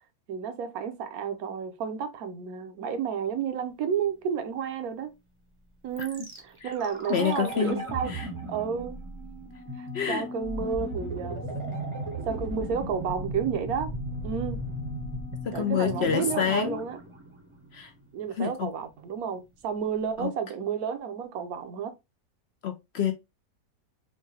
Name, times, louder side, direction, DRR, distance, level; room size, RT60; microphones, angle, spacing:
voice 1, 0.3-5.1 5.8-8.1 8.5-9.0 9.8-11.5 12.2-13.9 14.2-14.7 15.5-17.0 18.1-21.9, right 7 dB, 70° right, 1.1 m, -31 dB
sound 1, 6.0-18.0 18.2-18.3, right 1 dB, 30° right, 0.6 m, -36 dB
voice 2, 7.1-7.8 8.1-8.3 9.9-10.3 15.4-16.8 17.7-17.9 18.4-18.7 20.2-20.3 22.6-23.1, left 8 dB, 70° left, 0.6 m, -27 dB
4.7 x 2.2 x 2.7 m
omnidirectional pair, 1.7 m